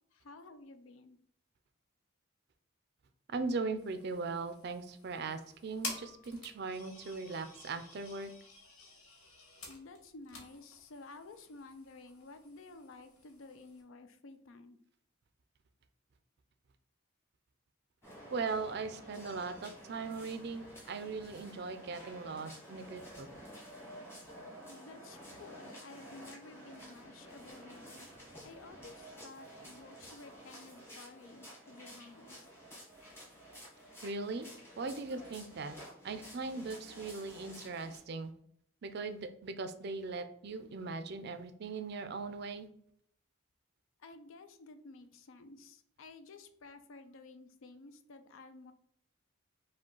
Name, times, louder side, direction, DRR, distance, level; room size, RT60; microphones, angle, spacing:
voice 1, 0.1-1.2 9.7-14.8 24.7-28.1 28.4-32.5 44.0-48.7, left 3 dB, 70° left, 10 dB, 0.5 m, -53 dB
voice 2, 3.3-8.3 18.3-23.3 34.0-34.5 34.8-35.7 36.0-38.3 38.8-42.7, right 4 dB, 50° right, 10 dB, 0.4 m, -39 dB
sound 1, 3.8-13.8, left 3 dB, 90° left, 1.4 m, -50 dB
sound 2, 18.0-38.0, equal, 10° left, 1.3 m, -51 dB
4.9 x 2.3 x 3.8 m, 0.67 s
head